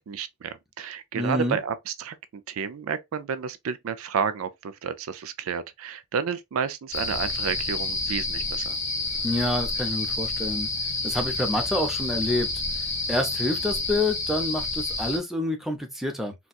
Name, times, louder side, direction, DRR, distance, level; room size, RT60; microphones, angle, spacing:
voice 1, 0.0-8.8, right 6 dB, 75° right, 0.4 m, -31 dB
voice 2, 1.1-1.6 9.2-10.7 11.0-12.5 12.7-16.3, left 1 dB, ahead, 0.6 m, -28 dB
sound 1, 6.9-15.2, left 3 dB, 35° left, 1.1 m, -29 dB
4.0 x 2.3 x 2.3 m
head